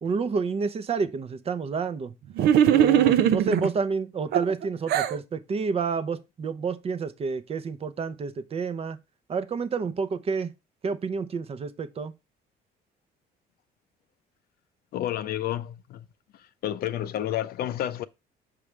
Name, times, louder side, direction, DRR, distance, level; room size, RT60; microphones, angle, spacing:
voice 1, 0.0-2.1 2.7-9.0 9.3-10.5 10.8-12.1, right 5 dB, 35° right, 0.7 m, -29 dB
sound 1, 2.4-3.7 4.3-5.2, right 10 dB, 70° right, 0.7 m, -20 dB
voice 2, 14.9-16.1 16.6-18.0, left 12 dB, 65° left, 0.5 m, -30 dB
6.1 x 5.0 x 3.2 m
cardioid pair, 110°, 17 cm